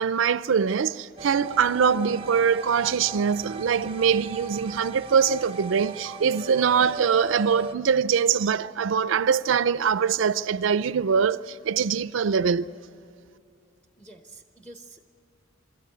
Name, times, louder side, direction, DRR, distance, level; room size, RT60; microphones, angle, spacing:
voice 1, 0.0-12.7, right 6 dB, 70° right, 0.4 m, -23 dB
sound 1, 1.2-7.8, right 3 dB, 30° right, 0.6 m, -38 dB
voice 2, 14.0-15.0, right 2 dB, 5° left, 0.9 m, -47 dB
26.0 x 13.5 x 9.4 m
head